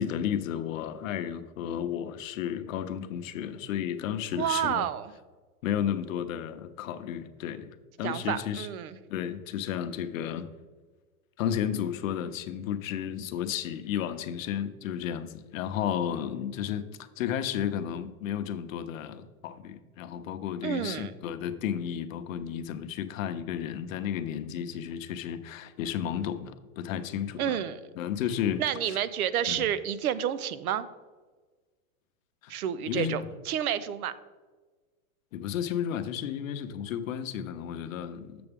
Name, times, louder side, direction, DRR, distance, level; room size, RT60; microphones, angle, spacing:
voice 1, 0.0-4.9 5.6-7.7 8.0-8.7 9.1-10.5 11.4-16.9 17.2-27.6 28.0-29.0 29.5-29.7 32.4-32.6 32.9-33.2 35.3-38.5, left 9 dB, 65° left, 10 dB, 0.8 m, -33 dB
voice 2, 4.3-5.1 8.0-9.0 20.6-21.1 27.4-27.8 28.6-30.9 32.5-34.1, right 10 dB, 75° right, 15 dB, 0.7 m, -30 dB
7.7 x 6.9 x 3.5 m, 1.3 s
supercardioid pair, 155°, 44 cm